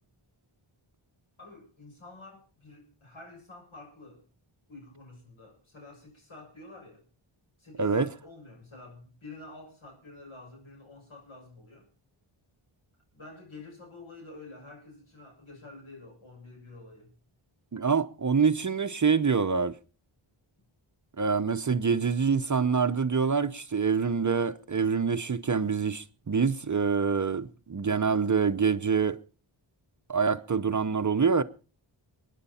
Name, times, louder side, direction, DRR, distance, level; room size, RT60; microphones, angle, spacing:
voice 1, 1.4-4.2 4.7-7.0 7.6-11.9 13.1-17.1, left 2 dB, 70° left, 7.1 m, -49 dB
voice 2, 7.8-8.1 17.7-19.8 21.2-29.2 30.1-31.4, right 5 dB, 35° right, 0.7 m, -26 dB
22.5 x 10.0 x 4.2 m
wide cardioid pair, 75°, 50 cm